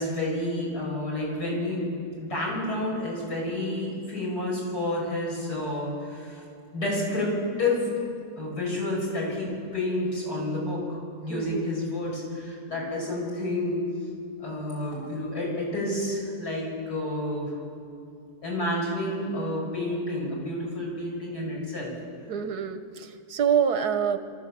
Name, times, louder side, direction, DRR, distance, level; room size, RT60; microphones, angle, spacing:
voice 1, 0.0-1.8 2.2-6.4 6.7-7.3 7.6-7.9 8.4-13.8 14.4-17.5 18.4-21.9, left 1 dB, 80° left, -4 dB, 6.6 m, -30 dB
voice 2, 11.3-11.6 22.3-24.2, right 8 dB, 90° right, 9 dB, 1.6 m, -26 dB
25.5 x 13.5 x 7.5 m, 2.4 s
omnidirectional pair, 1.7 m